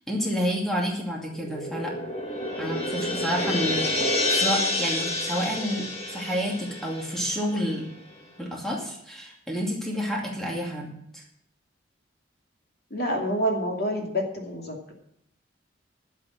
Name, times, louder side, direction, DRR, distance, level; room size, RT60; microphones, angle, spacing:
voice 1, 0.0-1.9 2.6-7.9 8.4-11.2, equal, ahead, -1 dB, 2.4 m, -29 dB
sound 1, 1.3-7.9, left 1 dB, 30° left, 1.8 m, -29 dB
voice 2, 12.9-14.9, equal, 55° left, 1 dB, 2.7 m, -28 dB
11.5 x 7.3 x 7.5 m, 0.73 s
head